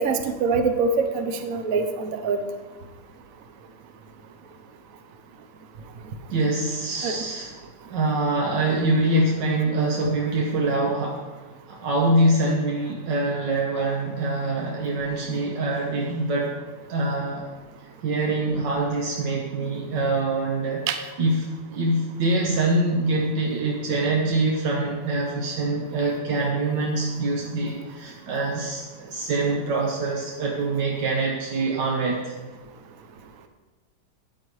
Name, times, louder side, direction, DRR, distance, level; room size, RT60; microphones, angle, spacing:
voice 1, 0.0-2.4 7.0-7.2 20.9-21.0, right 4 dB, 60° right, 7 dB, 1.2 m, -24 dB
voice 2, 6.3-7.6 7.9-11.3 11.7-16.6 16.9-17.5 18.0-32.3, right 2 dB, 85° right, -2 dB, 1.8 m, -24 dB
13.5 x 9.0 x 3.2 m, 1.3 s
omnidirectional pair, 1.9 m